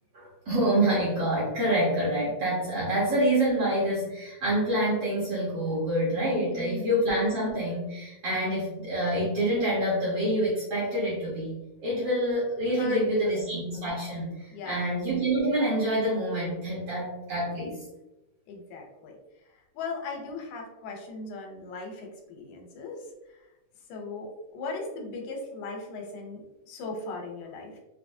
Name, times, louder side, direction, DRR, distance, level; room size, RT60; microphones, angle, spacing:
voice 1, 0.1-11.6 11.8-17.8, right 1 dB, 65° right, -6 dB, 1.6 m, -27 dB
voice 2, 6.5-6.9 12.8-13.0 14.5-14.8 18.5-19.1 19.5-23.1 23.3-23.5 23.9-27.8, left 3 dB, 80° left, 1 dB, 2.3 m, -37 dB
5.6 x 2.9 x 2.6 m, 0.97 s
omnidirectional pair, 3.9 m